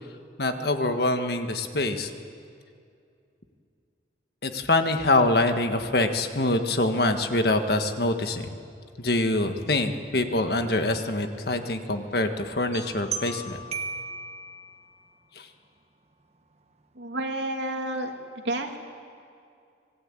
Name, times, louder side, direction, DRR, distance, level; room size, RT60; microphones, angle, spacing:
voice 1, 0.4-2.1 4.4-8.6 9.0-13.6 15.3-15.5, left 2 dB, 55° left, 7 dB, 1.6 m, -25 dB
sound 1, 12.7-15.1, right 4 dB, 35° right, 1.3 m, -36 dB
voice 2, 17.0-18.1 18.4-18.8, right 1 dB, 75° right, 3 dB, 2.5 m, -30 dB
25.5 x 18.5 x 9.0 m, 2.4 s
head